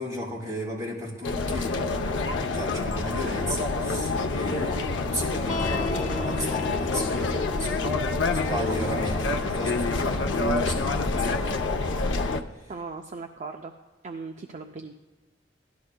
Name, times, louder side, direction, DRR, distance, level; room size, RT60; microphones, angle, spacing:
voice 1, 0.0-1.8 2.2-11.8, equal, 20° right, -6 dB, 4.2 m, -35 dB
sound 1, 1.2-12.4, left 3 dB, 70° left, 0.6 m, -27 dB
sound 2, 5.5-12.1, left 2 dB, 40° left, 0.9 m, -39 dB
voice 2, 12.7-13.7 14.0-14.9, right 4 dB, 40° right, 4 dB, 0.5 m, -38 dB
17.0 x 12.5 x 2.2 m, 1.3 s
head